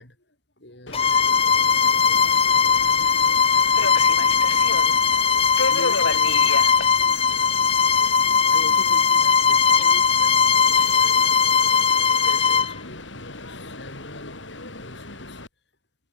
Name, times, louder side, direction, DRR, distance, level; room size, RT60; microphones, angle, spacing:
voice 1, 0.0-2.2 5.7-6.6 8.5-11.6 11.9-15.4, left 1 dB, 60° left, 8.0 m, -44 dB
Subway metro underground, 0.9-15.5, left 3 dB, 80° left, 7.0 m, -34 dB
Bowed string instrument, 0.9-12.7, left 6 dB, 30° left, 0.8 m, -19 dB
head